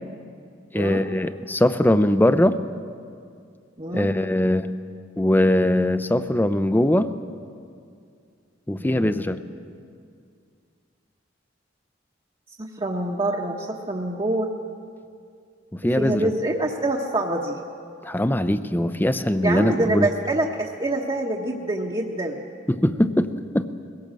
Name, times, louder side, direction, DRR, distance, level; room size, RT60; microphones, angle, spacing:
voice 1, 0.7-2.6 3.9-4.7 5.2-7.1 8.7-9.4 15.7-16.3 18.0-20.1 22.7-23.3 23.5-23.7, left 1 dB, 10° left, 11 dB, 0.5 m, -21 dB
voice 2, 3.8-4.1 8.8-9.3 12.6-14.5 16.0-17.6 19.4-22.4, right 2 dB, 25° right, -1 dB, 1.1 m, -26 dB
21.0 x 17.5 x 7.5 m, 2.3 s
head